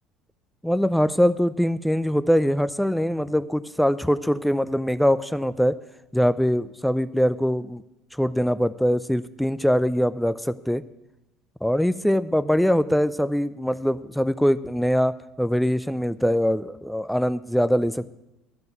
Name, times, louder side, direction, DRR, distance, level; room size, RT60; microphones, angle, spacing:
voice 1, 0.6-5.8 6.1-7.8 8.1-10.8 11.6-18.1, equal, ahead, 15 dB, 0.4 m, -22 dB
13.0 x 5.3 x 7.8 m, 0.93 s
hypercardioid pair, 65°, 0 cm